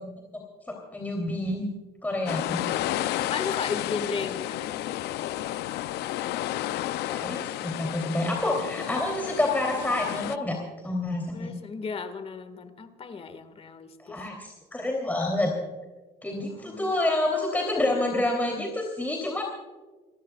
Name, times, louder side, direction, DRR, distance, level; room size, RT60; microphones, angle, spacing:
voice 1, 0.7-1.7 2.0-2.7 7.1-10.6 10.8-11.5 14.0-15.5 16.2-19.4, left 1 dB, 10° left, 0 dB, 3.2 m, -28 dB
sound 1, 2.3-10.4, left 14 dB, 80° left, 0.6 m, -31 dB
voice 2, 3.1-4.7 11.3-14.2 16.5-16.9, left 5 dB, 35° left, 9 dB, 1.8 m, -35 dB
29.5 x 15.5 x 2.4 m, 1.3 s
cardioid pair, 110°, 17 cm